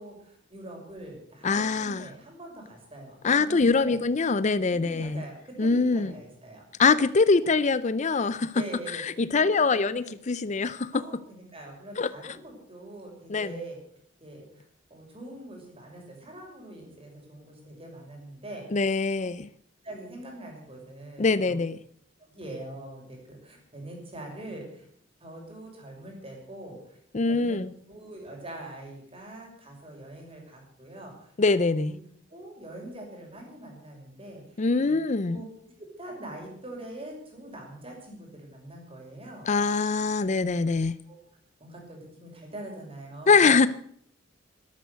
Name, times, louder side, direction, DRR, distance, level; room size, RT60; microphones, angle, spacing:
voice 1, 0.0-4.0 4.7-6.6 7.4-7.5 8.5-9.2 9.7-10.2 10.9-13.8 14.2-14.6 14.9-18.6 19.2-19.3 19.8-21.6 22.2-24.8 25.2-27.0 27.2-31.3 31.7-32.0 32.3-34.9 35.3-35.5 35.8-39.5 41.1-41.2 41.6-43.5, right 1 dB, 30° right, 1 dB, 6.2 m, -43 dB
voice 2, 1.4-2.0 3.2-5.2 5.6-6.1 6.8-8.5 8.9-10.9 12.0-12.3 13.3-13.6 18.7-19.5 21.2-21.8 27.1-27.7 31.4-31.9 34.6-35.4 39.5-41.0 43.3-43.7, left 4 dB, 40° left, 16 dB, 0.5 m, -23 dB
12.5 x 12.5 x 8.0 m, 0.65 s
head